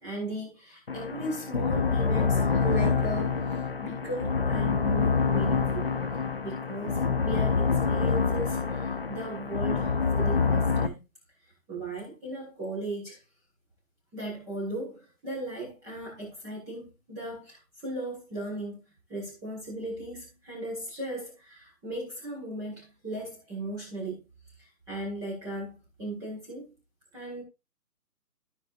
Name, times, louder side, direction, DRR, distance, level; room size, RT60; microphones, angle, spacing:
voice 1, 0.0-5.9 6.4-11.0 11.4-13.2 14.1-18.8 19.1-24.2 24.6-26.7 27.1-27.4, right 1 dB, 5° right, 1.6 m, -37 dB
sound 1, 0.9-10.9, left 5 dB, 40° left, 0.6 m, -26 dB
13.5 x 6.0 x 2.5 m
hypercardioid pair, 165°, 48 cm